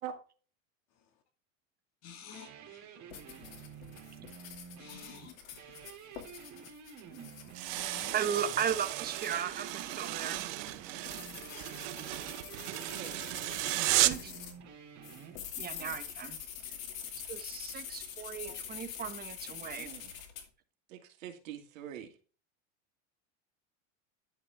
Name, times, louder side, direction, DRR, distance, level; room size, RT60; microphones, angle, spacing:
voice 1, 2.0-2.9 4.8-5.8 7.7-8.1 11.5-12.0 13.9-14.0, left 8 dB, 40° left, 2.2 m, -51 dB
sound 1, 2.3-15.4, right 7 dB, 45° right, 3.0 m, -51 dB
sound 2, 3.1-14.6 15.0-20.4, left 8 dB, 85° left, 2.6 m, -46 dB
sound 3, 7.5-14.3, right 18 dB, 65° right, 0.9 m, -34 dB
voice 2, 8.1-10.4 13.9-14.3 15.6-16.4 17.3-19.9, right 8 dB, 25° right, 1.4 m, -36 dB
voice 3, 12.8-13.6 15.8-16.0 18.4-18.6 19.7-20.1 20.9-22.1, right 10 dB, 80° right, 2.5 m, -45 dB
11.0 x 7.0 x 3.6 m
supercardioid pair, 125°, 39 cm